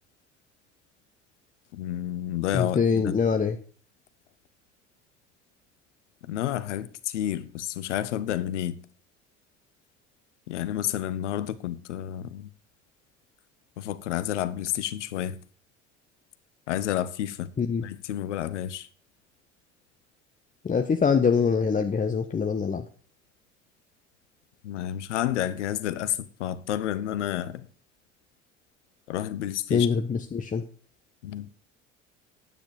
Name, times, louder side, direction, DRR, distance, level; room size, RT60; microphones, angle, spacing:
voice 1, 1.7-3.2 6.3-8.8 10.5-12.5 13.8-15.4 16.7-17.5 17.8-18.9 24.6-27.6 29.1-29.9 31.2-31.5, left 12 dB, 75° left, 0.9 m, -30 dB
voice 2, 2.5-3.6 17.6-17.8 20.6-22.8 29.7-30.6, left 6 dB, 20° left, 1.0 m, -24 dB
10.0 x 9.0 x 5.0 m
figure-of-eight pair, 65°, 36 cm